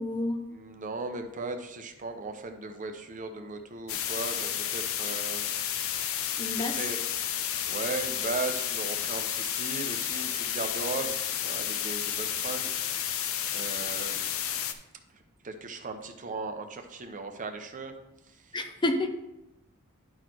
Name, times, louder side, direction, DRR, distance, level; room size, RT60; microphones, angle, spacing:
voice 1, 0.0-0.4 6.4-6.8 18.5-19.1, left 1 dB, 20° left, 6 dB, 0.6 m, -29 dB
voice 2, 0.5-5.5 6.6-14.3 15.1-17.9 18.3-18.6, right 3 dB, 35° right, 6 dB, 0.7 m, -37 dB
sound 1, 3.9-14.7, left 10 dB, 65° left, 0.6 m, -31 dB
10.5 x 4.3 x 4.6 m, 0.91 s
head